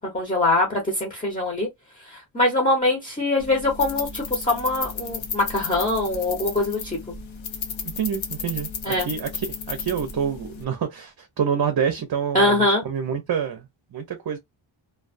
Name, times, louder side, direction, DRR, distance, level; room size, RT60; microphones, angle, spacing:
voice 1, 0.0-1.7 2.0-7.0 8.8-9.1 12.3-12.8, left 2 dB, 15° left, 0.9 m, -23 dB
sound 1, 3.4-10.6, left 5 dB, 70° left, 0.8 m, -33 dB
voice 2, 7.8-13.7 13.9-14.4, right 7 dB, 50° right, 0.6 m, -27 dB
2.3 x 2.2 x 2.5 m
wide cardioid pair, 125°, 48 cm